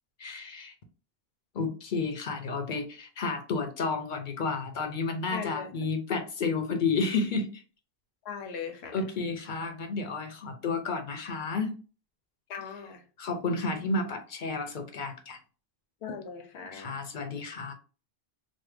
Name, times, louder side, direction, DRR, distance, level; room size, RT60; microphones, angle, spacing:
voice 1, 0.2-0.7 1.5-7.6 8.9-11.7 13.2-15.4 16.7-17.7, left 4 dB, 55° left, 0.7 m, -31 dB
voice 2, 5.3-5.7 8.2-9.0 12.5-13.0 16.0-17.0, left 6 dB, 90° left, 0.9 m, -39 dB
3.2 x 2.1 x 3.2 m
omnidirectional pair, 1.0 m